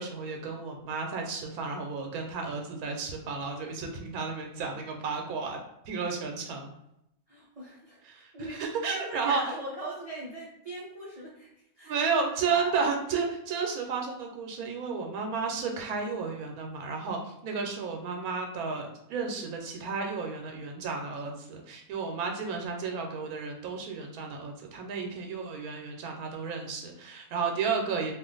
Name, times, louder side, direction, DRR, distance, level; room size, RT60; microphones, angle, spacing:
voice 1, 0.0-5.6 5.9-6.7 8.0-9.6 11.8-28.1, right 5 dB, 85° right, 2 dB, 1.0 m, -32 dB
voice 2, 7.3-8.6 8.9-11.5 11.8-11.9 12.4-12.7, right 1 dB, 50° right, -6 dB, 0.4 m, -40 dB
2.4 x 2.4 x 3.7 m, 0.80 s
omnidirectional pair, 1.5 m